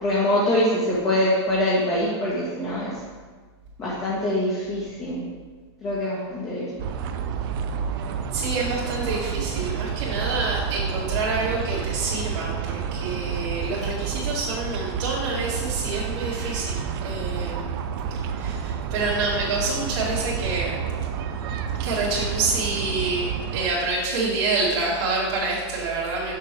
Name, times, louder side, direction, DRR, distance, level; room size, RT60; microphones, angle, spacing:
voice 1, 0.0-2.9 3.8-5.2 5.8-6.7, left 1 dB, 20° left, -7 dB, 1.3 m, -24 dB
sound 1, 6.8-23.7, right 7 dB, 50° right, 0.5 m, -30 dB
voice 2, 8.3-17.6 18.4-20.8 21.8-26.4, right 3 dB, 70° right, -8 dB, 2.0 m, -27 dB
6.7 x 6.1 x 3.3 m, 1.4 s
hypercardioid pair, 140°, 15 cm